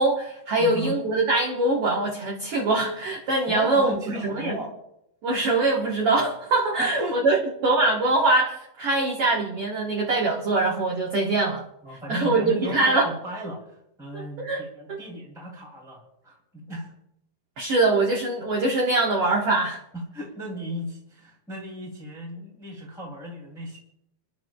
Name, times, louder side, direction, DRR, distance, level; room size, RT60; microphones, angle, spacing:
voice 1, 0.0-4.6 5.2-11.6 12.1-13.1 14.1-14.6 14.9-15.0 17.6-19.8, right 2 dB, 55° right, -2 dB, 1.7 m, -23 dB
voice 2, 0.6-1.0 3.5-4.7 6.8-7.4 11.8-16.9 19.9-23.8, equal, ahead, -4 dB, 1.9 m, -36 dB
30.0 x 11.0 x 2.3 m, 0.80 s
omnidirectional pair, 4.1 m